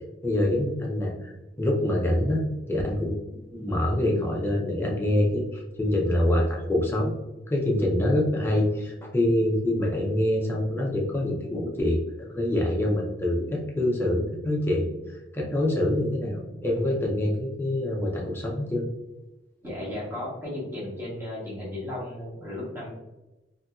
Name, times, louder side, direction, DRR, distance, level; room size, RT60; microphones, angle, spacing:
voice 1, 0.2-1.3 1.6-3.2 3.5-7.1 7.5-18.8, left 1 dB, 10° left, -2 dB, 0.5 m, -25 dB
voice 2, 19.6-22.9, left 1 dB, 10° right, -8 dB, 1.0 m, -35 dB
2.7 x 2.6 x 2.3 m, 1.0 s
head